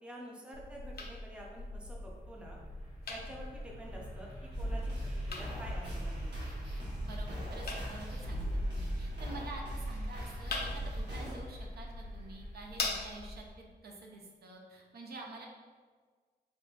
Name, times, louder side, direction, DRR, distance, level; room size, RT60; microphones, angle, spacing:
voice 1, 0.0-2.6 3.1-4.3 4.6-4.9 5.3-6.5, right 1 dB, 5° right, -2 dB, 0.5 m, -48 dB
sound 1, 0.5-13.5, left 2 dB, 70° left, 0.5 m, -43 dB
sound 2, 1.7-13.2, left 1 dB, 35° right, 1.2 m, -52 dB
sound 3, 4.5-11.3, equal, 90° right, 0.9 m, -38 dB
voice 2, 7.0-15.5, right 2 dB, 65° right, 0 dB, 0.5 m, -48 dB
3.7 x 3.5 x 2.3 m, 1.5 s
wide cardioid pair, 135°, 17 cm